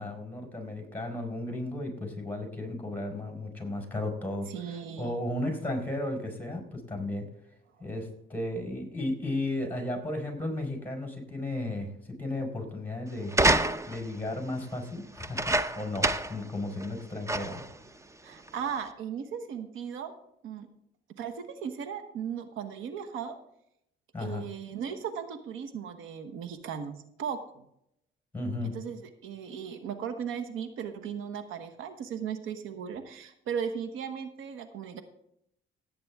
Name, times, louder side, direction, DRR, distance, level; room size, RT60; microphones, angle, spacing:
voice 1, 0.0-7.3 7.8-11.9 12.2-13.3 13.9-17.7 24.1-24.4 28.3-28.8, left 1 dB, 10° left, 2 dB, 4.7 m, -34 dB
voice 2, 4.5-5.2 18.2-20.1 20.4-20.7 21.2-23.4 24.2-27.7 28.7-35.0, right 7 dB, 90° right, 8 dB, 1.2 m, -37 dB
sound 1, 13.3-14.1 15.2-16.4 16.8-16.9 17.3-17.7 18.5-18.6, right 2 dB, 15° right, 0.7 m, -26 dB
16.5 x 8.7 x 3.6 m, 0.76 s
cardioid pair, 90°, 20 cm